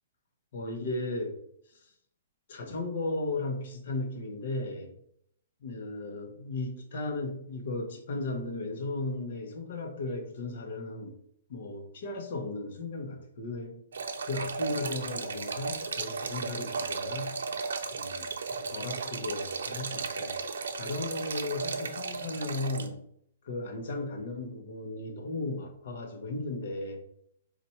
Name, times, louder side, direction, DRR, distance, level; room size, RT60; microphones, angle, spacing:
voice 1, 0.5-1.3 1.7-1.9 2.5-4.9 5.6-11.2 11.5-13.8 14.2-17.4 17.9-20.4 20.7-23.0 23.4-27.0, left 2 dB, 50° left, 4 dB, 0.9 m, -35 dB
sound 1, 13.9-22.9, right 4 dB, 85° right, 0.5 m, -35 dB
4.3 x 2.5 x 4.1 m, 0.71 s
hypercardioid pair, 170°, 0 cm